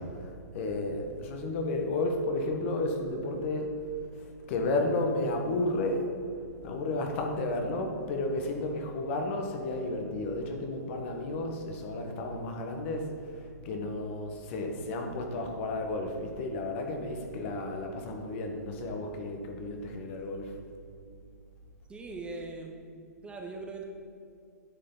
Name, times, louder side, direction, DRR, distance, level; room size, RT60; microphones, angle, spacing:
voice 1, 0.0-3.8 4.2-6.1 6.6-20.5, left 2 dB, 45° left, 3 dB, 1.3 m, -32 dB
voice 2, 21.9-23.8, right 3 dB, 10° right, 1 dB, 0.7 m, -41 dB
9.6 x 6.7 x 3.9 m, 2.5 s
hypercardioid pair, 125°, 9 cm